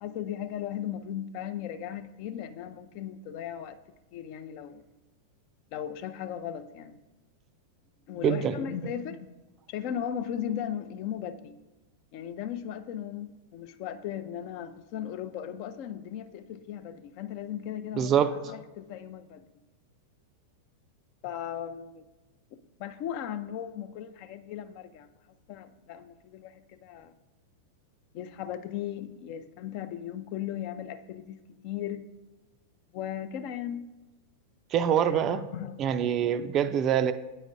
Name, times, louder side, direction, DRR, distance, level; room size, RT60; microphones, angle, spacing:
voice 1, 0.0-3.8 4.1-4.8 5.7-7.0 8.1-9.3 9.7-11.6 12.1-19.4 21.2-22.0 22.8-25.1 25.5-27.1 28.1-32.1 32.9-33.9 35.1-35.8, left 10 dB, 50° left, 0.4 m, -37 dB
voice 2, 8.2-8.5 18.0-18.3 34.7-35.4 35.8-37.1, right 9 dB, 35° right, 0.3 m, -24 dB
8.6 x 4.9 x 2.6 m
figure-of-eight pair, 95°, 0 cm